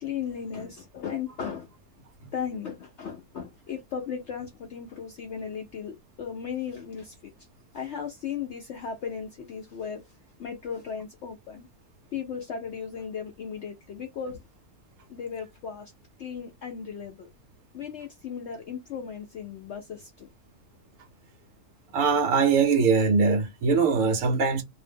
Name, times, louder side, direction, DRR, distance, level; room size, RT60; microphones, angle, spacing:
voice 1, 0.0-1.7 2.2-7.3 7.7-11.7 12.1-14.4 15.1-15.9 16.2-17.3 17.7-20.3, left 7 dB, 75° left, 0.6 m, -36 dB
voice 2, 21.9-24.6, right 5 dB, 65° right, 0.8 m, -22 dB
2.6 x 2.0 x 3.3 m
omnidirectional pair, 1.7 m